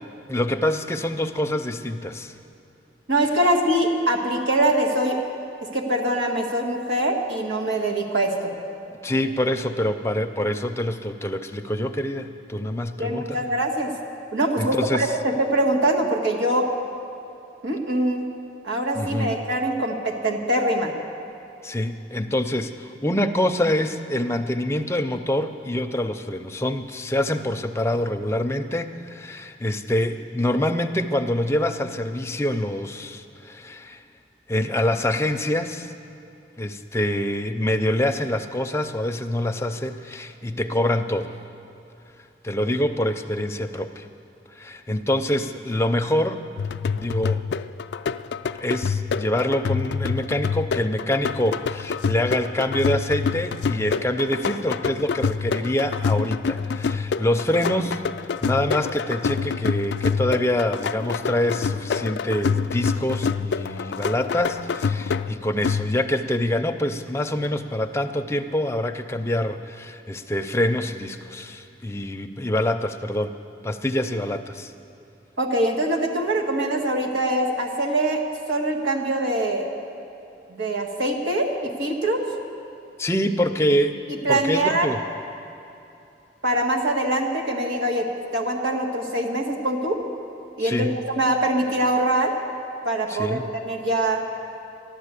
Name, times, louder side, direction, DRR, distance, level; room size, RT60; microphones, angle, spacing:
voice 1, 0.3-2.3 9.0-13.5 14.6-15.1 19.0-19.4 21.6-34.0 34.5-35.9 36.6-41.4 42.4-44.1 44.5-46.4 47.0-47.4 48.6-58.0 58.4-73.3 73.6-74.7 83.0-84.0 84.3-85.0 90.6-91.0 93.1-93.5, left 1 dB, 15° left, 6 dB, 0.5 m, -25 dB
voice 2, 3.1-5.2 5.6-8.5 13.0-13.9 14.3-16.7 17.6-18.2 18.6-20.9 75.4-78.2 78.5-79.7 80.5-82.2 84.2-84.9 86.4-90.0 90.6-92.3 92.8-94.2, right 1 dB, 85° right, 1 dB, 1.8 m, -23 dB
sound 1, 46.6-66.2, left 5 dB, 70° left, 0.3 m, -27 dB
13.0 x 11.0 x 8.3 m, 2.8 s
head